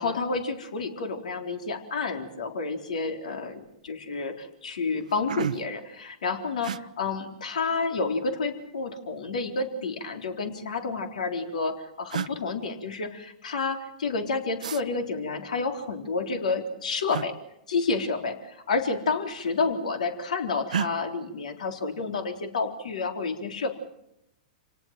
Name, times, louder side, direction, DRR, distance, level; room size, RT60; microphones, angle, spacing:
voice 1, 0.0-17.3 17.7-23.7, left 4 dB, 75° left, 5 dB, 3.7 m, -30 dB
sound 1, 2.9-3.2 3.5-4.0 4.5-4.6 4.9-5.8 6.6-6.8 8.1-8.7 9.9-10.7 11.6-11.7 12.1-12.3 14.6-14.8 17.1-17.3 18.7-18.9 19.2-19.8 20.7-20.9, right 8 dB, 80° right, 0.9 m, -33 dB
29.0 x 18.5 x 7.5 m, 0.83 s
hypercardioid pair, 110°, 4 cm